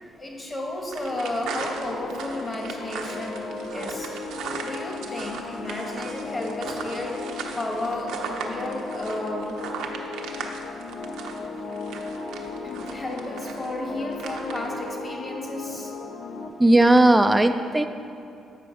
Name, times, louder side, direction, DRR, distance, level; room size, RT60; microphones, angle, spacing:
voice 1, 0.2-4.1 4.6-7.2 7.6-9.6 12.6-15.9, left 1 dB, 25° left, 0 dB, 1.4 m, -33 dB
sound 1, 0.9-14.9 16.7-17.0, right 5 dB, 85° right, 0.7 m, -38 dB
sound 2, 1.1-16.5, left 3 dB, 60° left, 0.6 m, -36 dB
voice 2, 16.6-17.9, right 1 dB, 10° right, 7 dB, 0.3 m, -17 dB
8.2 x 4.8 x 5.0 m, 2.6 s
cardioid pair, 90°, 0 cm